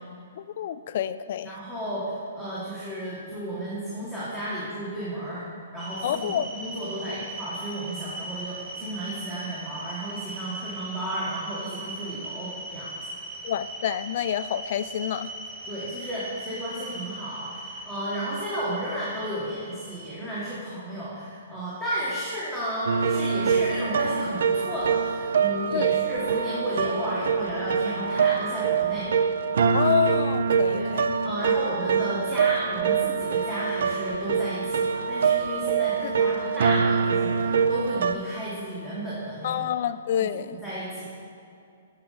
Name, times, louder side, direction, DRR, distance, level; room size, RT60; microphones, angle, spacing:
voice 1, 0.4-1.5 6.0-6.5 13.4-15.3 25.7-25.9 29.7-31.1 36.0-36.1 39.4-40.6, left 9 dB, 55° left, 13 dB, 0.3 m, -28 dB
voice 2, 1.4-5.4 5.7-12.9 15.7-29.1 30.7-30.9 31.2-39.7 40.3-41.1, right 1 dB, 10° right, -10 dB, 1.5 m, -33 dB
sound 1, 5.8-20.1, right 2 dB, 30° right, 1.1 m, -39 dB
sound 2, 22.9-38.2, right 6 dB, 70° right, 0.4 m, -24 dB
8.5 x 6.4 x 4.0 m, 2.5 s
hypercardioid pair, 145°, 0 cm